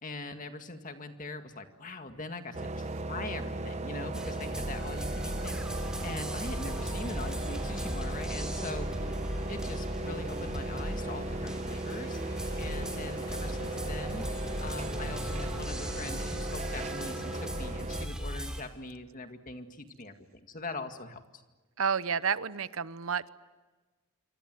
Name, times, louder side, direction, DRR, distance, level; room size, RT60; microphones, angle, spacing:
voice 1, 0.0-8.9 9.5-12.2 12.6-14.2 14.6-21.4, left 2 dB, 35° left, 7 dB, 2.0 m, -42 dB
sound 1, 2.4-16.2, left 1 dB, 20° left, 7.2 m, -53 dB
sound 2, 2.5-18.1, right 2 dB, 30° right, 0.8 m, -37 dB
sound 3, 4.1-18.6, equal, 5° right, 3.1 m, -38 dB
voice 2, 21.8-23.3, right 6 dB, 65° right, 16 dB, 0.8 m, -30 dB
27.5 x 24.5 x 7.9 m, 1.3 s
head